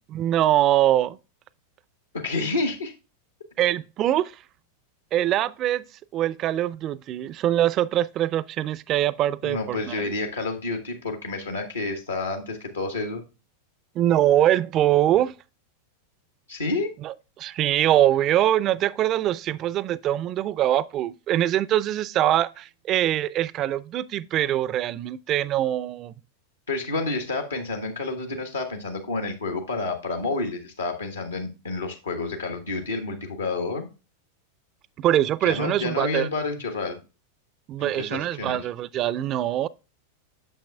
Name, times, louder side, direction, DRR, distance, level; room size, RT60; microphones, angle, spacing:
voice 1, 0.1-1.2 3.6-4.3 5.1-5.8 6.1-10.1 14.0-15.3 17.0-26.1 35.0-36.3 37.7-39.7, right 12 dB, 35° right, 0.4 m, -23 dB
voice 2, 2.1-2.9 9.4-13.2 16.5-16.9 26.7-33.9 35.4-37.0 37.8-38.6, left 3 dB, 75° left, 1.2 m, -29 dB
8.9 x 6.9 x 2.2 m
figure-of-eight pair, 90°, 0 cm